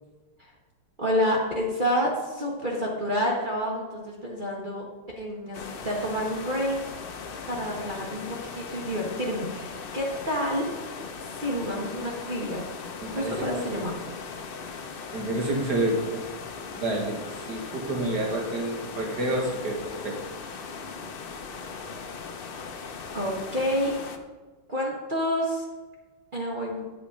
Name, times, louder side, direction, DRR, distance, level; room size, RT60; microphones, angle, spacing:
voice 1, 1.0-4.8 5.2-5.6 5.8-6.8 7.5-10.6 11.3-12.6 13.1-13.9 23.1-23.9 24.7-25.6 26.3-26.8, equal, 30° right, -4 dB, 1.4 m, -28 dB
sound 1, 5.5-24.2, left 5 dB, 90° left, 0.5 m, -39 dB
voice 2, 13.0-13.9 15.1-16.2 16.8-20.1, right 1 dB, 60° right, 1 dB, 2.3 m, -29 dB
8.4 x 8.2 x 5.1 m, 1.3 s
omnidirectional pair, 2.1 m